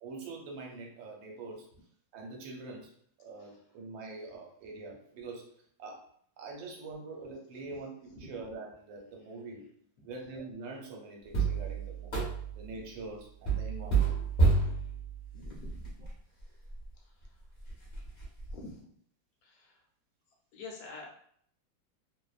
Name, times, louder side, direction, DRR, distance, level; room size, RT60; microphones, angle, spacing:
voice 1, 0.0-1.7 2.1-2.9 3.2-6.1 6.4-9.7 10.0-12.1 12.6-14.2, right 3 dB, 80° right, 0 dB, 1.4 m, -44 dB
sound 1, 11.3-12.7 13.5-16.1 16.7-16.8 17.2-17.3 17.7-18.5, right 4 dB, 45° left, 0.7 m, -29 dB
voice 2, 15.3-15.8 17.0-17.1 18.5-18.8 19.4-19.8 20.5-21.1, left 3 dB, 65° left, -2 dB, 1.1 m, -47 dB
3.0 x 2.1 x 2.3 m, 0.63 s
omnidirectional pair, 2.0 m